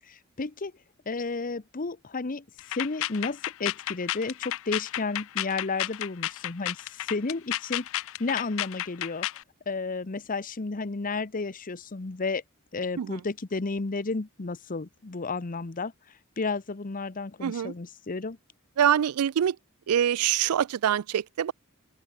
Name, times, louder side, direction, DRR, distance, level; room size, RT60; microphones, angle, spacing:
voice 1, 0.1-0.7 1.1-7.9 8.2-9.3 9.7-12.4 12.7-15.9 16.4-18.4, left 3 dB, 40° left, 0.8 m, -32 dB
sound 1, 2.6-9.4, left 14 dB, 65° left, 0.5 m, -32 dB
voice 2, 17.4-17.7 18.8-19.6 19.9-21.5, right 9 dB, 85° right, 0.4 m, -25 dB
open air
head